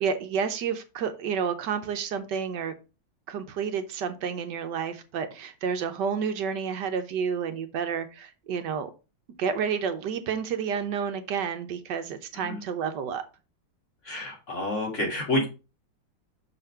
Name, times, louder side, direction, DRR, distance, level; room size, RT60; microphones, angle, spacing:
voice 1, 0.0-2.7 3.3-8.9 9.4-13.2, right 6 dB, 75° right, 8 dB, 1.4 m, -30 dB
voice 2, 14.0-15.5, left 1 dB, 40° left, 0 dB, 2.5 m, -29 dB
6.4 x 4.2 x 5.5 m, 0.31 s
omnidirectional pair, 2.0 m